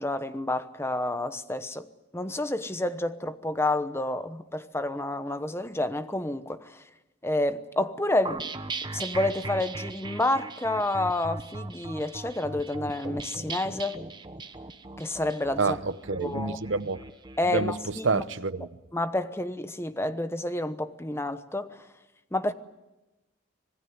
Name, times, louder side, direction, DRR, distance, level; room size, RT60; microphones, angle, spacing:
voice 1, 0.0-1.9 2.1-6.8 7.2-8.5 8.9-14.0 15.0-15.8 16.2-16.6 17.4-18.2 18.9-21.8 22.3-22.5, left 1 dB, 10° left, 1.0 m, -29 dB
sound 1, 8.2-17.7, right 3 dB, 20° right, 1.1 m, -38 dB
voice 2, 15.6-17.0 17.5-18.7, right 4 dB, 70° right, 0.9 m, -28 dB
26.0 x 18.5 x 9.5 m
head